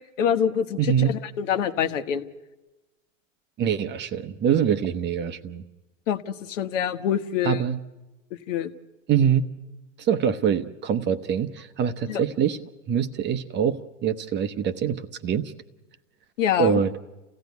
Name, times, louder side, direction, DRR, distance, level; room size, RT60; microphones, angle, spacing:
voice 1, 0.2-2.2 6.1-7.6 8.5-8.7 12.1-12.2 16.4-16.8, left 9 dB, 70° left, 9 dB, 1.4 m, -25 dB
voice 2, 0.8-1.2 3.6-5.6 7.4-7.8 9.1-9.5 10.0-12.6 12.9-15.5 16.6-16.9, right 8 dB, 25° right, 12 dB, 0.9 m, -24 dB
29.0 x 15.5 x 9.4 m, 1.1 s
hypercardioid pair, 120°, 39 cm